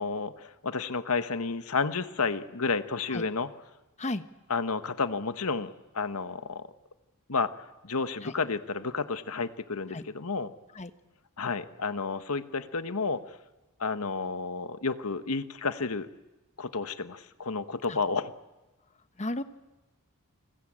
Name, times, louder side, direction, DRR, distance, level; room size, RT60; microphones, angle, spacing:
voice 1, 0.0-3.5 4.5-6.7 7.3-7.5 7.8-10.5 11.4-13.4 13.8-16.1 16.6-18.3, left 4 dB, 75° left, 11 dB, 1.3 m, -31 dB
voice 2, 3.1-3.2 4.0-4.2 8.2-8.3 9.9-10.0 10.7-10.9 17.9-18.0 19.2-19.4, left 2 dB, 30° left, 11 dB, 1.1 m, -33 dB
29.0 x 21.0 x 8.8 m, 1.1 s
head